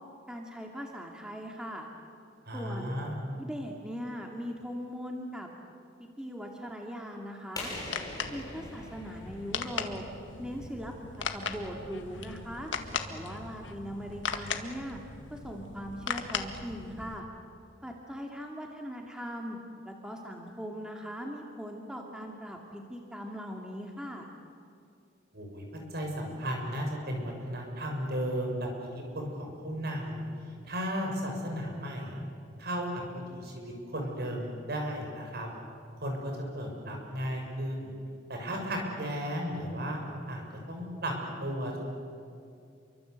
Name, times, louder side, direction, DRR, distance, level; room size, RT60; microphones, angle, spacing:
voice 1, 0.3-1.9 2.5-3.0 3.4-5.5 6.0-7.7 8.3-10.0 10.4-12.7 13.1-15.0 15.3-17.3 17.8-19.6 19.8-24.3, equal, 5° right, 1 dB, 2.3 m, -40 dB
voice 2, 2.5-3.1 25.3-25.7 25.9-30.2 30.7-32.2 32.6-35.5 36.0-37.9 38.3-40.0 40.3-40.4 40.7-41.1 41.4-41.8, equal, 60° right, 1 dB, 6.9 m, -34 dB
sound 1, 7.6-17.2, left 5 dB, 80° left, 1.9 m, -38 dB
sound 2, 7.6-10.2, left 2 dB, 20° left, 6.7 m, -42 dB
29.0 x 24.0 x 8.2 m, 2.5 s
head